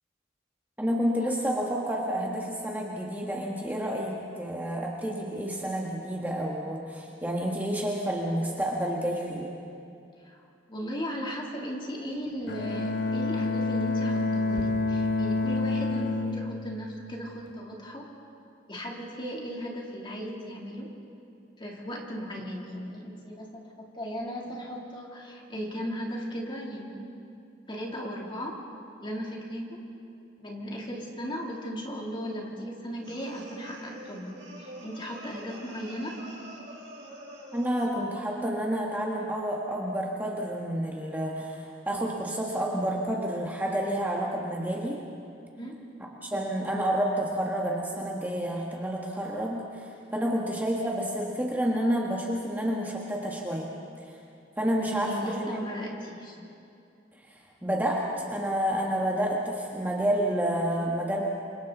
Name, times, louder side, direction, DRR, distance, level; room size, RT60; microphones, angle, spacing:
voice 1, 0.8-9.5 37.5-45.0 46.2-53.7 54.6-55.5 57.3-61.2, equal, 10° right, -2 dB, 1.6 m, -29 dB
voice 2, 10.7-18.1 18.7-20.9 21.6-27.1 27.7-28.6 29.0-29.8 30.4-36.2 45.6-45.8 54.9-56.4, equal, 25° left, -2 dB, 3.2 m, -36 dB
Bowed string instrument, 12.5-17.5, left 3 dB, 60° left, 1.3 m, -28 dB
sound 1, 33.0-37.9, right 1 dB, 65° right, 5.9 m, -45 dB
29.0 x 25.0 x 4.1 m, 2.6 s
head